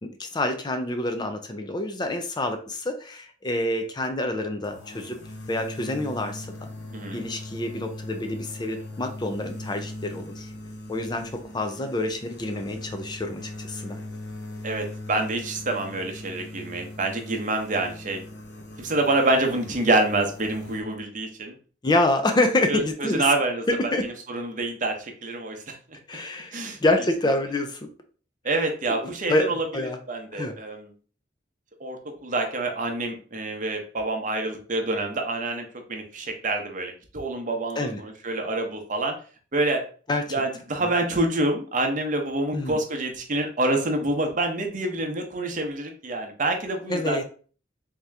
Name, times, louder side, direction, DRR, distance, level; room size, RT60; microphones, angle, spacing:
voice 1, 0.0-5.2 5.5-6.7 7.1-10.5 10.9-14.0 21.8-23.3 23.8-24.0 26.1-27.9 29.0-30.0 30.3-30.6 37.8-38.0 40.1-40.3 42.5-42.8 46.9-47.2, left 1 dB, 25° left, 6 dB, 0.4 m, -27 dB
sound 1, 4.6-20.8, left 1 dB, 80° left, 0.8 m, -40 dB
voice 2, 6.9-7.2 14.6-18.2 18.8-21.5 22.7-23.7 24.0-25.8 26.5-26.8 28.4-29.6 30.1-30.9 31.8-39.2 39.5-39.8 40.3-47.2, right 2 dB, 45° right, 4 dB, 0.8 m, -27 dB
3.6 x 2.8 x 3.2 m, 0.40 s
head